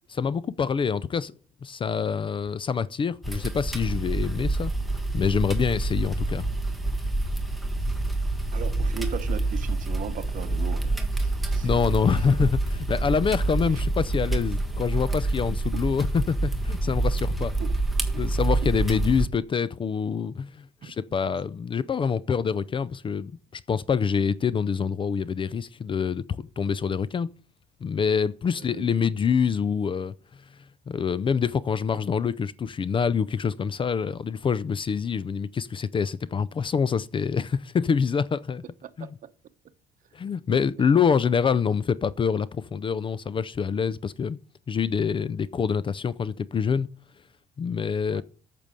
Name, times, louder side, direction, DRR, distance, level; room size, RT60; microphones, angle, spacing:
voice 1, 0.1-1.3 1.6-4.7 5.1-6.4 11.6-17.5 18.2-27.3 27.8-30.1 30.9-38.6 39.0-39.2 40.1-44.4 44.7-46.9 47.6-48.2, left 6 dB, 30° left, 0.4 m, -26 dB
sound 1, 3.2-19.3, right 2 dB, ahead, 1.4 m, -27 dB
voice 2, 8.5-12.0 13.6-13.8 17.6-17.8 18.1-18.2 20.8-20.9 28.6-29.0 38.8-39.3 40.5-40.6 48.1-48.2, right 9 dB, 50° right, 1.0 m, -38 dB
8.6 x 6.8 x 7.6 m
cardioid pair, 110°, 17 cm